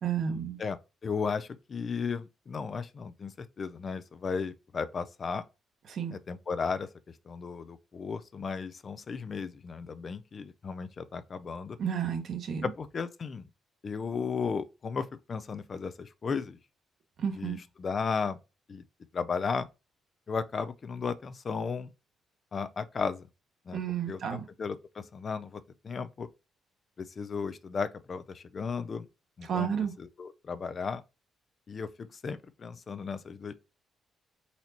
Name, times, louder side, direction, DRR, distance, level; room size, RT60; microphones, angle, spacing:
voice 1, 0.0-0.6 5.9-6.2 11.8-12.6 17.2-17.6 23.7-24.4 29.5-29.9, right 8 dB, 60° right, 1.0 m, -31 dB
voice 2, 0.6-5.4 6.1-6.9 7.3-11.8 12.6-13.4 13.8-16.6 17.4-18.4 18.7-18.8 19.1-19.7 20.3-21.9 22.5-23.3 23.7-23.8 24.1-26.3 27.0-29.1 29.4-31.0 31.7-33.5, left 5 dB, 40° left, 0.4 m, -35 dB
4.5 x 4.1 x 2.8 m
cardioid pair, 100°, 0 cm